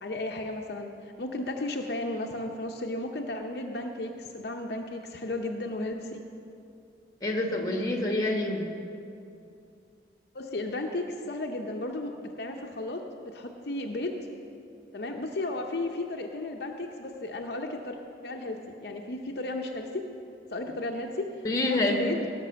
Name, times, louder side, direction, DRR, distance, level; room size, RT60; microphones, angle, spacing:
voice 1, 0.0-0.9 1.2-6.2 10.3-14.3 14.9-18.0 18.2-20.1 20.5-21.3 21.6-22.3, left 2 dB, 60° left, 2 dB, 0.7 m, -34 dB
voice 2, 7.2-8.7 21.4-22.0, left 2 dB, 20° left, 2 dB, 1.4 m, -27 dB
16.5 x 6.1 x 6.9 m, 2.6 s
head